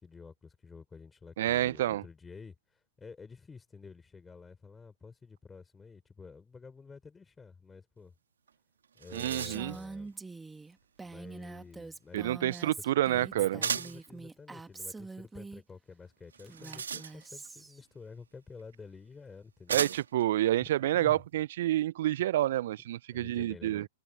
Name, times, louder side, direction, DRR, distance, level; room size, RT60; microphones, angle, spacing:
voice 1, 0.0-8.1 8.9-10.1 11.0-12.4 12.8-19.8 20.9-21.2 23.1-23.9, left 5 dB, 15° left, 3.9 m, -50 dB
voice 2, 1.4-2.0 9.1-9.8 12.1-13.6 19.7-23.9, right 13 dB, 60° right, 0.4 m, -28 dB
sound 1, 8.5-8.6 8.8-9.8 13.6-14.1 16.3-17.5 18.6-18.7 19.7-20.2, right 7 dB, 80° right, 2.1 m, -35 dB
Female speech woman speaking, 9.3-15.6 16.4-17.8, right 3 dB, 10° right, 2.1 m, -45 dB
open air
hypercardioid pair, 105°, 0 cm